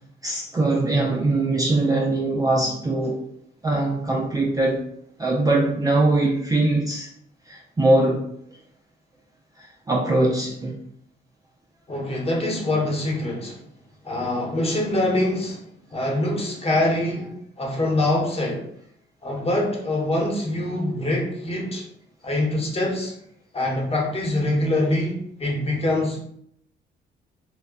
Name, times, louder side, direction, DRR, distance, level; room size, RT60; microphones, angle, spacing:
voice 1, 0.2-3.2 3.6-4.9 5.2-7.1 7.5-8.3 9.6-10.8, right 2 dB, 20° right, 0.4 m, -22 dB
voice 2, 11.9-13.6 14.0-15.6 15.9-18.7 19.2-21.8 22.2-23.1 23.5-26.2, left 1 dB, 30° left, 1.0 m, -24 dB
2.2 x 2.1 x 3.6 m
cardioid pair, 90°, 20 cm